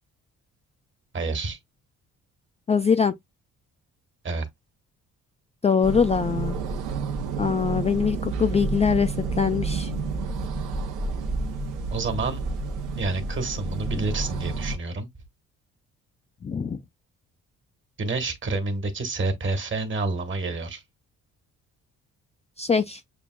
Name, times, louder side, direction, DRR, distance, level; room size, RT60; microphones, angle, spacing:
voice 1, 1.1-1.6 4.2-4.5 11.9-12.4 13.0-15.1 18.0-20.8, right 3 dB, 40° right, 1.4 m, -28 dB
voice 2, 2.7-3.1 5.6-6.6 7.4-9.9 16.4-16.8 22.6-23.0, left 6 dB, 20° left, 0.3 m, -23 dB
sound 1, 5.8-14.8, right 4 dB, 85° right, 0.8 m, -30 dB
6.8 x 2.3 x 2.3 m
cardioid pair, 90°, 30 cm